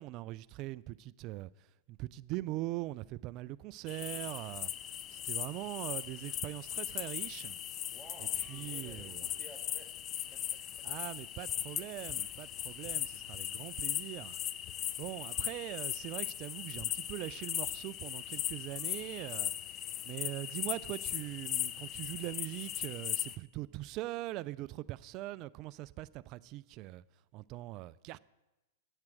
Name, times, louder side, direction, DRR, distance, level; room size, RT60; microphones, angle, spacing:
voice 1, 0.0-1.5 1.9-4.7 5.1-7.6 8.5-9.3 10.8-14.4 15.0-19.5 20.0-27.0 27.3-28.2, right 17 dB, 45° right, 0.3 m, -41 dB
sound 1, 3.9-23.4, left 11 dB, 35° left, 0.4 m, -38 dB
voice 2, 7.9-10.0 10.3-10.9 19.3-19.7, right 1 dB, ahead, 2.2 m, -56 dB
9.0 x 7.4 x 6.2 m
hypercardioid pair, 115°, 0 cm